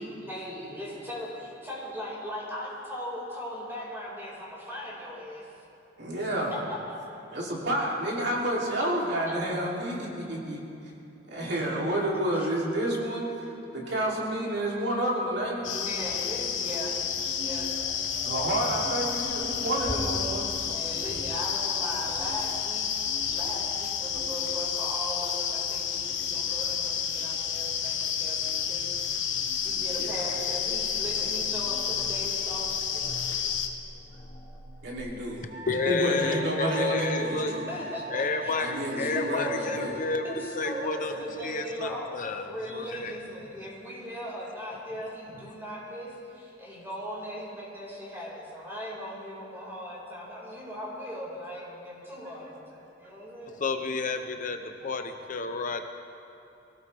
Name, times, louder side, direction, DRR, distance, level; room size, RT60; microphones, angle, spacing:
voice 1, 0.0-5.5 6.5-6.8 12.3-12.5 15.6-17.0 17.4-17.7 19.6-20.2 20.6-22.9 23.3-29.2 29.6-33.6 37.2-38.5 38.9-39.8 40.2-42.1 42.4-53.6, equal, 15° right, -6 dB, 4.9 m, -39 dB
voice 2, 6.0-6.6 7.3-10.6 11.3-15.7 18.2-20.6 26.6-26.7 30.0-30.1 34.8-35.4 35.9-37.7 38.6-39.9, right 1 dB, 65° right, -4 dB, 3.0 m, -29 dB
sound 1, 15.3-35.0, left 1 dB, 25° left, 2.4 m, -45 dB
sound 2, 15.6-33.7, left 7 dB, 75° left, 1.3 m, -30 dB
Wind instrument woodwind instrument, 35.5-41.0, right 1 dB, 45° right, 3.0 m, -41 dB
voice 3, 35.7-37.5 38.1-40.2 40.6-41.1 41.4-43.1 53.6-55.9, left 4 dB, 45° left, 6 dB, 0.7 m, -30 dB
23.5 x 17.5 x 3.4 m, 2.8 s
head